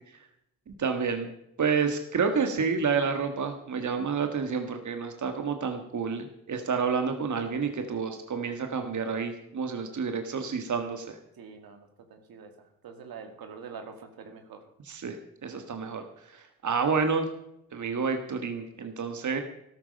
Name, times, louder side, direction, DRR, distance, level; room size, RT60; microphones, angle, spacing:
voice 1, 0.8-1.3 1.6-11.2 14.9-15.2 15.4-16.0 16.6-17.3 17.7-19.4, right 5 dB, 55° right, 6 dB, 1.7 m, -29 dB
voice 2, 11.4-14.6, right 5 dB, 80° right, 6 dB, 2.1 m, -45 dB
13.0 x 12.5 x 5.3 m, 0.80 s
supercardioid pair, 50°, 36 cm